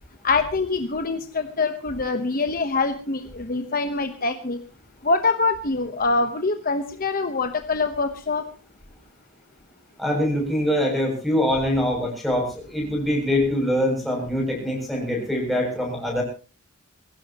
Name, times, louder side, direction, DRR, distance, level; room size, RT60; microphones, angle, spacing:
voice 1, 0.2-4.6 5.0-8.4, left 3 dB, 40° left, 7 dB, 1.1 m, -24 dB
voice 2, 10.0-16.2, left 1 dB, ahead, -1 dB, 7.3 m, -24 dB
23.0 x 16.5 x 3.0 m, 0.34 s
head